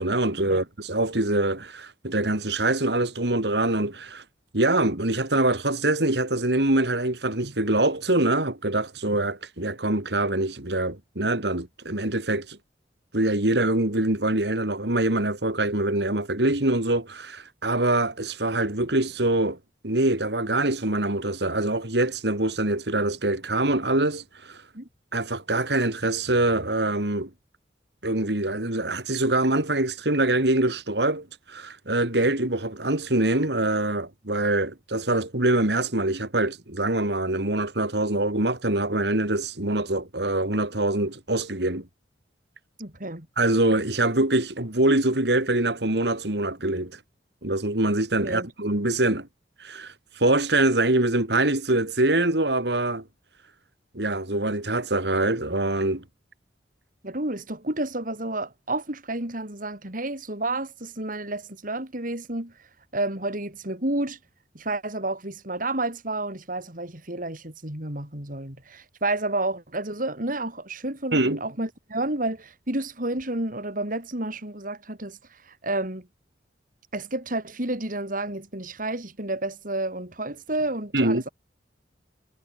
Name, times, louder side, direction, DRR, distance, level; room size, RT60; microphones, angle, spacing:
voice 1, 0.0-4.2 4.5-12.6 13.1-19.6 19.8-24.6 25.1-27.3 28.0-41.9 43.4-47.0 47.4-49.3 49.6-53.1 53.9-56.0 71.1-71.4 80.9-81.2, right 2 dB, 65° right, 3.2 m, -24 dB
voice 2, 42.8-43.3 48.2-48.5 57.0-62.7 62.9-64.2 64.5-76.1 76.9-81.3, right 2 dB, 50° right, 4.7 m, -30 dB
head